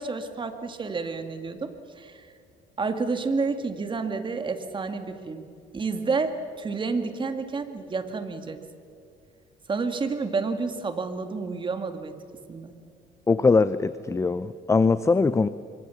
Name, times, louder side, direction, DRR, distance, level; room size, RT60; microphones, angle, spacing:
voice 1, 0.0-2.3 2.8-5.4 5.7-8.6 9.7-12.1 12.5-12.7, right 4 dB, 30° right, 8 dB, 2.1 m, -30 dB
voice 2, 13.3-15.5, left 4 dB, 15° left, 15 dB, 0.5 m, -21 dB
26.0 x 23.5 x 7.1 m, 2.4 s
cardioid pair, 110°, 17 cm